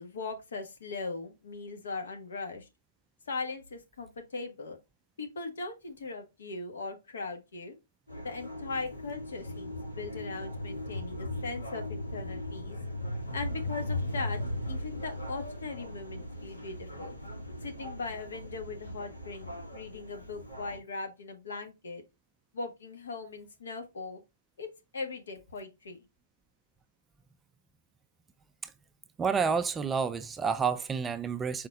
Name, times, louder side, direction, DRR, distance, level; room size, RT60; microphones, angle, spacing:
voice 1, 0.0-2.7 3.3-4.8 5.2-7.8 8.2-12.8 13.3-14.4 14.7-17.1 17.6-22.0 22.5-24.2 24.6-26.0, left 3 dB, 65° left, 1.4 m, -39 dB
sound 1, 8.1-20.8, left 1 dB, 90° left, 2.4 m, -38 dB
voice 2, 29.2-31.7, right 6 dB, 10° right, 0.3 m, -29 dB
4.9 x 4.0 x 2.4 m
figure-of-eight pair, 120°, 0 cm